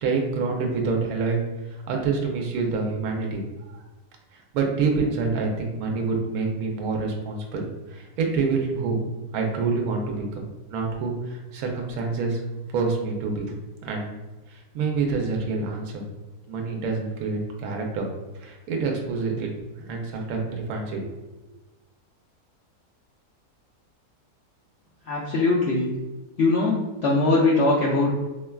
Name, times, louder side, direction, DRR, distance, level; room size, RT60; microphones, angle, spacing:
voice 1, 0.0-3.8 4.3-9.0 9.3-10.4 10.7-12.4 12.7-13.5 13.8-14.2 14.5-16.0 16.5-18.0 18.4-19.5 19.9-21.1, right 4 dB, 70° right, 1 dB, 1.1 m, -27 dB
voice 2, 25.1-25.9 26.4-28.1, left 2 dB, 75° left, -5 dB, 0.5 m, -21 dB
4.4 x 2.2 x 2.3 m, 1.1 s
omnidirectional pair, 1.6 m